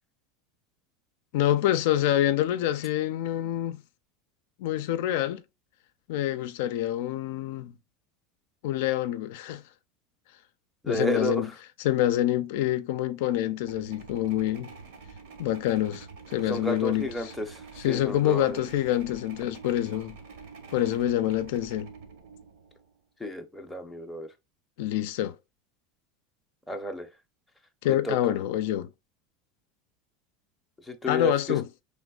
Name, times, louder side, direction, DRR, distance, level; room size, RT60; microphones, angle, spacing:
voice 1, 1.3-3.8 4.6-5.4 6.1-7.7 8.6-9.6 10.9-11.5 11.8-14.7 15.4-17.3 17.8-20.2 20.7-21.9 24.8-25.4 27.8-28.9 31.1-31.6, left 13 dB, 65° left, 0.4 m, -26 dB
voice 2, 10.8-11.5 16.5-18.6 23.2-24.3 26.7-27.1 27.9-28.2 30.8-31.6, left 1 dB, ahead, 0.6 m, -32 dB
sound 1, 13.5-22.9, right 5 dB, 65° right, 1.0 m, -47 dB
5.1 x 3.4 x 2.3 m
supercardioid pair, 170°, 0 cm